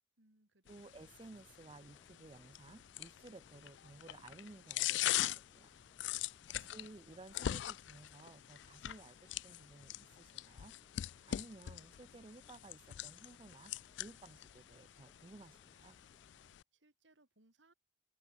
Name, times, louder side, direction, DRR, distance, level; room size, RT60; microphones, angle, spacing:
voice 1, 0.2-1.0 6.5-6.8 16.7-17.7, right 2 dB, 80° right, 3.8 m, -71 dB
sound 1, 0.7-16.6, left 13 dB, 75° left, 0.3 m, -43 dB
voice 2, 0.7-5.7 6.6-10.8 11.3-13.7 14.0-16.0, right 2 dB, 25° right, 0.4 m, -56 dB
sound 2, 1.0-16.5, left 1 dB, 15° left, 1.9 m, -70 dB
open air
head